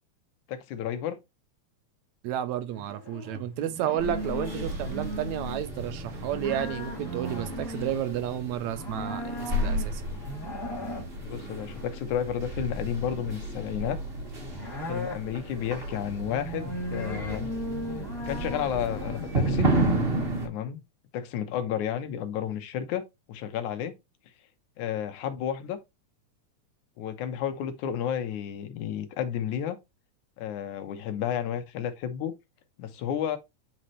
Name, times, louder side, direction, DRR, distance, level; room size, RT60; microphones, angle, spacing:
voice 1, 0.5-1.2 11.2-14.0 14.9-17.5 18.3-19.7 20.4-20.8 21.1-23.9 24.8-25.8 27.0-29.8 30.4-32.3 32.8-33.4, left 9 dB, 85° left, 2.5 m, -32 dB
voice 2, 2.2-10.0, right 11 dB, 75° right, 2.0 m, -31 dB
sound 1, 2.7-20.0, equal, 10° left, 2.0 m, -38 dB
sound 2, 4.0-20.5, right 1 dB, 25° right, 1.3 m, -33 dB
8.5 x 4.3 x 3.1 m
omnidirectional pair, 3.3 m